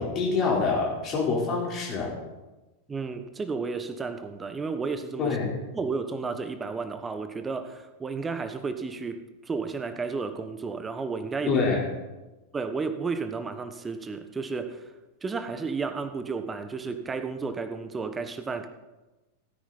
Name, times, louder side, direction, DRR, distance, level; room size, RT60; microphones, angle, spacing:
voice 1, 0.0-2.1 5.2-5.5 11.5-11.8, left 4 dB, 35° left, -2 dB, 4.0 m, -26 dB
voice 2, 2.9-5.4 5.7-11.5 12.5-14.8 15.2-18.7, right 4 dB, 15° right, 9 dB, 1.2 m, -32 dB
17.0 x 9.6 x 4.1 m, 1.1 s
figure-of-eight pair, 90°, 0 cm